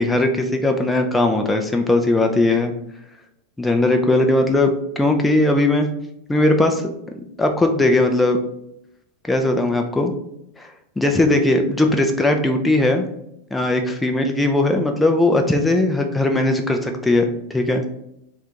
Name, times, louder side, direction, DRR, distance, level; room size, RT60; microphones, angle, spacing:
voice 1, 0.0-2.7 3.6-5.9 6.3-8.4 9.2-10.1 10.6-13.1 13.5-17.9, left 2 dB, 5° left, 3 dB, 0.5 m, -19 dB
4.5 x 2.5 x 4.3 m, 0.78 s
figure-of-eight pair, 90°, 0 cm